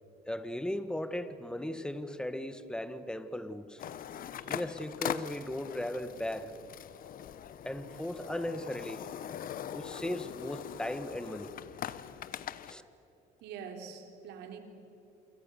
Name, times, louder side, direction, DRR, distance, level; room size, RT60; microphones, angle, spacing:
voice 1, 0.3-3.8 4.5-6.5 7.6-9.0 9.7-11.5 12.7-12.8, left 1 dB, 5° left, 11 dB, 1.5 m, -37 dB
sound 1, 3.8-12.7, left 10 dB, 55° left, 1.0 m, -41 dB
voice 2, 13.4-14.6, right 6 dB, 85° right, 5 dB, 3.5 m, -45 dB
28.0 x 26.0 x 7.0 m, 2.9 s
cardioid pair, 110°, 17 cm